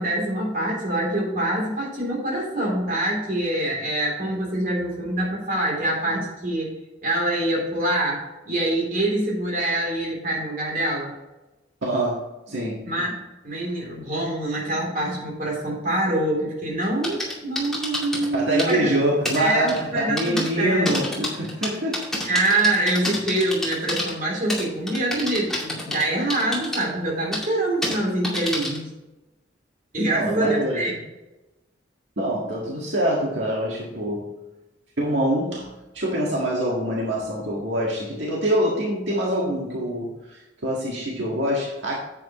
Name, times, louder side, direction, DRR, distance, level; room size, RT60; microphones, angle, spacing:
voice 1, 0.0-11.1 12.8-13.2 13.4-18.9 19.3-21.0 22.2-28.8 29.9-30.9, right 1 dB, 45° right, -2 dB, 3.4 m, -25 dB
voice 2, 11.8-12.2 12.5-12.9 18.3-22.0 30.0-30.8 32.2-34.3 35.0-42.0, right 1 dB, 75° right, -4 dB, 1.8 m, -25 dB
sound 1, 16.8-18.3 18.6-18.7 19.3-19.4 19.7-19.8 20.2-20.5 20.9-24.1 24.5-26.0 26.3-26.8 27.3-27.5 27.8-28.0 28.2-28.8, left 1 dB, ahead, 2.3 m, -28 dB
9.9 x 8.2 x 3.1 m, 1.1 s
head